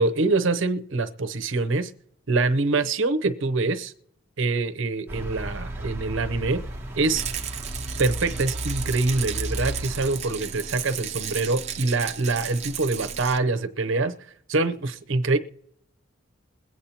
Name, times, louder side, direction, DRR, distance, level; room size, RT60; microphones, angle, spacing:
voice 1, 0.0-1.9 2.3-3.9 4.4-6.6 7.0-7.2 8.0-14.1 14.5-15.4, right 3 dB, 70° right, 0.7 m, -25 dB
sound 1, 5.1-10.2, equal, 10° right, 1.1 m, -34 dB
Rattle, 7.1-13.4, right 8 dB, 30° right, 0.6 m, -34 dB
22.0 x 8.4 x 2.9 m
head